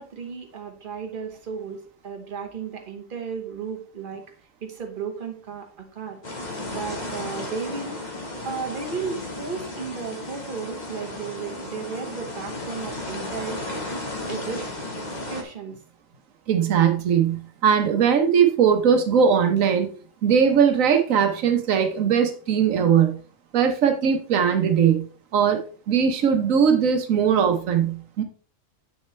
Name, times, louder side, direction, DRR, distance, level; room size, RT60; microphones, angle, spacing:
voice 1, 0.0-4.2 4.6-6.2 6.7-8.0 8.4-13.8 14.3-14.7 15.0-15.8, right 6 dB, 40° right, 3 dB, 1.4 m, -34 dB
sound 1, 6.2-15.4, left 2 dB, 35° left, 1.4 m, -34 dB
voice 2, 16.5-19.9 20.2-23.2 23.5-25.1 25.3-28.2, right 7 dB, 90° right, 6 dB, 1.3 m, -20 dB
7.8 x 6.4 x 3.2 m, 0.40 s
omnidirectional pair, 1.3 m